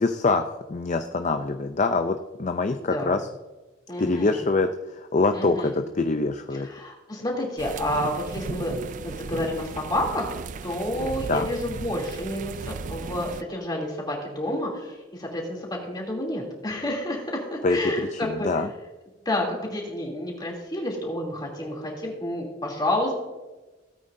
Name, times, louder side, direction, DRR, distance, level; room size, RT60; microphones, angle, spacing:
voice 1, 0.0-3.2 4.0-4.7 4.9-6.7 11.3-11.5 17.6-18.7, left 3 dB, 40° left, 7 dB, 0.5 m, -25 dB
voice 2, 2.8-3.1 3.9-4.5 5.3-5.8 6.5-18.5 19.2-23.1, left 1 dB, 20° left, -2 dB, 2.9 m, -30 dB
sound 1, 7.6-13.4, right 5 dB, 40° right, 0.3 m, -36 dB
17.5 x 8.9 x 2.7 m, 1.1 s
head